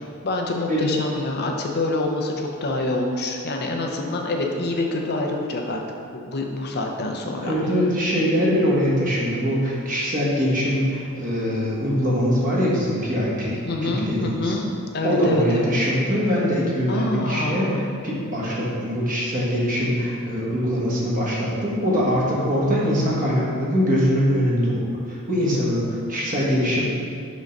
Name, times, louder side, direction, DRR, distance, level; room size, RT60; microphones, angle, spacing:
voice 1, 0.2-5.8 6.1-7.5 13.7-15.6 16.9-17.8, left 2 dB, 50° left, 1 dB, 0.6 m, -26 dB
voice 2, 7.4-14.5 15.0-17.7 18.0-26.8, equal, 40° right, -6 dB, 1.4 m, -22 dB
5.1 x 3.8 x 5.3 m, 2.5 s
head